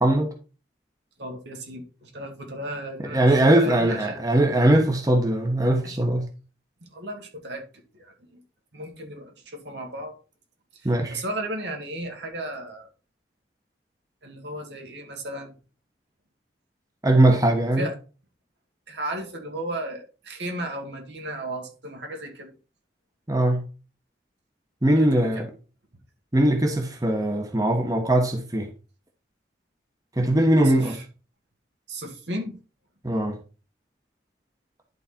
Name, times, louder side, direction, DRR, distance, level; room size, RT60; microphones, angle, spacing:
voice 1, 0.0-0.3 3.1-6.3 10.8-11.2 17.0-17.9 23.3-23.6 24.8-25.5 26.3-28.7 30.2-31.0 33.0-33.4, right 1 dB, 20° right, 1.1 m, -20 dB
voice 2, 1.2-4.2 5.8-6.0 6.8-7.6 7.9-8.4 8.7-10.1 10.7-12.9 14.2-15.5 17.8-17.9 18.9-22.5 25.0-25.4 30.6-31.0 31.9-32.6, right 1 dB, 75° right, 2.2 m, -35 dB
11.0 x 4.2 x 4.3 m
head